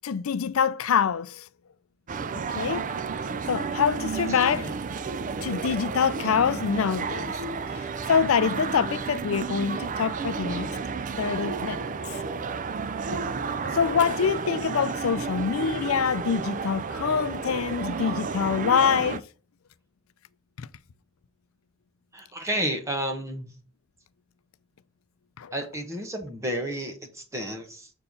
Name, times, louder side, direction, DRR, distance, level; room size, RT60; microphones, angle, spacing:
voice 1, 0.0-1.4 2.3-2.8 3.5-4.7 5.4-7.4 7.7-7.8 8.1-10.7 11.2-11.8 13.1-13.2 13.6-19.2 20.6-20.7 25.4-25.5, left 6 dB, 80° left, 0.5 m, -25 dB
sound 1, 2.1-19.2, right 5 dB, 40° right, 0.5 m, -32 dB
voice 2, 4.3-4.7 22.1-23.5 25.5-27.9, right 1 dB, 15° right, 1.1 m, -31 dB
6.7 x 4.5 x 5.2 m
head